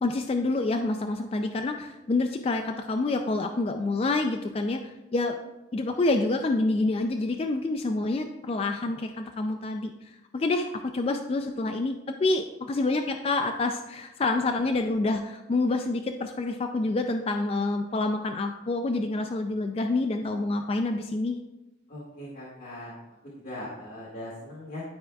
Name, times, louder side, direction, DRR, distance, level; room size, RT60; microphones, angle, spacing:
voice 1, 0.0-5.4 5.7-21.4, left 2 dB, 35° left, 5 dB, 0.3 m, -27 dB
voice 2, 21.9-22.9 23.4-24.8, left 1 dB, 50° left, -8 dB, 1.7 m, -39 dB
11.0 x 4.5 x 2.3 m, 1.0 s
head